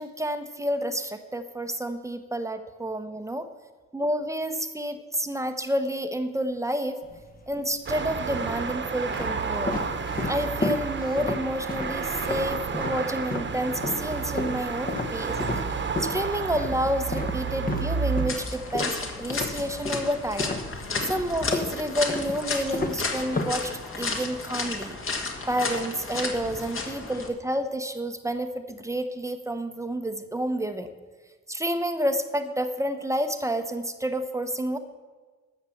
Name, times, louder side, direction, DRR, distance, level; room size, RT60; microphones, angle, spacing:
voice 1, 0.0-3.5 3.9-7.0 7.5-9.8 10.2-15.4 16.0-20.6 21.0-25.0 25.5-30.9 31.5-34.8, equal, 10° right, 8 dB, 0.9 m, -29 dB
sound 1, 7.0-7.7 8.4-13.6 13.8-20.1 20.4-24.1, left 2 dB, 30° left, 1.2 m, -32 dB
sound 2, 7.9-18.3, right 5 dB, 40° right, 1.3 m, -31 dB
sound 3, 18.3-27.3, left 3 dB, 45° left, 2.0 m, -33 dB
14.0 x 5.8 x 7.2 m, 1.4 s
cardioid pair, 90°, 30 cm